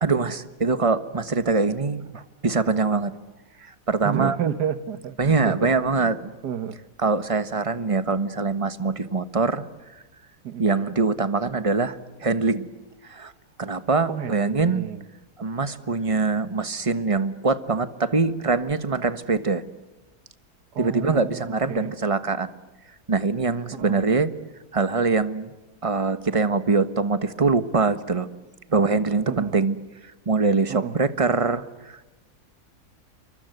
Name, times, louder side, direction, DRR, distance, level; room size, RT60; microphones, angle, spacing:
voice 1, 0.0-3.1 3.6-4.4 5.2-6.3 7.0-9.6 10.6-12.7 13.1-13.3 13.6-14.9 15.4-19.6 20.8-22.5 23.1-24.3 24.7-25.5 25.8-28.3 28.7-29.8 30.3-32.1, right 4 dB, 20° right, 12 dB, 1.2 m, -23 dB
voice 2, 4.0-6.1 6.4-6.8 10.4-10.7 14.1-15.0 20.7-21.9 23.7-24.0 29.3-29.6 30.7-31.0, right 9 dB, 85° right, 12 dB, 1.8 m, -31 dB
28.0 x 24.5 x 8.0 m, 1.1 s
omnidirectional pair, 1.7 m